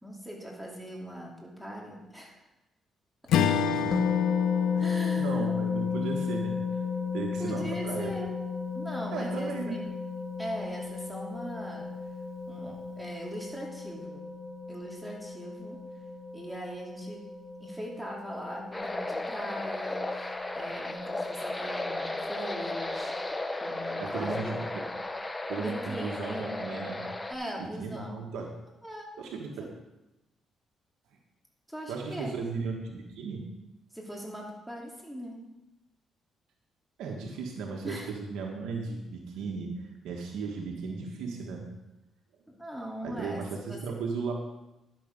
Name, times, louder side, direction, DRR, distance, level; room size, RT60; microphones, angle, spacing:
voice 1, 0.0-2.4 4.8-5.5 7.4-8.4 8.7-9.8 10.4-11.9 12.5-14.3 14.7-15.8 16.3-17.2 17.6-20.3 20.5-24.6 25.6-26.5 27.3-28.1 28.8-29.1 29.6-29.7 31.7-32.3 33.9-35.4 37.8-38.1 42.5-43.4 43.7-43.8, equal, 5° right, -2 dB, 2.6 m, -40 dB
Strum, 3.3-7.9, left 8 dB, 80° left, 0.6 m, -31 dB
voice 2, 3.4-4.0 4.7-4.9 5.2-6.8 7.1-8.1 9.1-9.8 24.0-24.8 25.5-27.1 27.6-28.5 29.2-29.7 31.9-33.4 37.0-39.7 40.0-41.7 43.0-44.3, right 4 dB, 85° right, 1 dB, 1.4 m, -36 dB
sound 1, 3.9-23.3, left 6 dB, 35° left, 1.2 m, -34 dB
sound 2, 18.7-27.3, left 2 dB, 15° left, 0.8 m, -35 dB
11.0 x 6.8 x 5.2 m, 0.97 s
cardioid pair, 90°, 0 cm